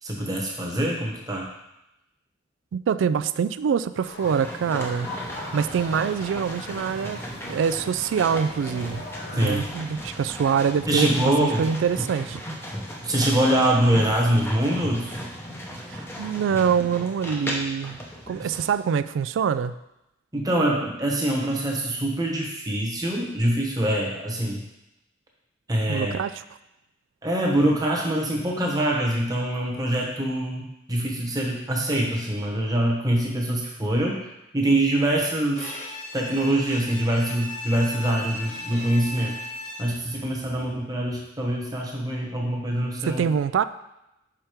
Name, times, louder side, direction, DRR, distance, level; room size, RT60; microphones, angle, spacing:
voice 1, 0.0-1.5 9.3-9.7 10.9-11.7 13.0-15.1 20.3-24.7 25.7-26.1 27.2-34.2 34.5-35.7 36.1-39.4 39.8-43.2, right 1 dB, 20° right, -1 dB, 1.1 m, -24 dB
voice 2, 2.7-5.1 5.5-9.0 9.3-12.4 15.9-18.0 18.3-19.8 25.9-26.4 43.1-43.6, right 7 dB, 80° right, 14 dB, 0.3 m, -25 dB
sound 1, 4.0-9.6, left 1 dB, 55° left, 1.5 m, -40 dB
sound 2, 4.2-18.8, equal, 10° left, 0.7 m, -36 dB
Bowed string instrument, 35.6-40.2, left 1 dB, 35° left, 1.1 m, -36 dB
5.7 x 5.0 x 4.5 m, 0.89 s
head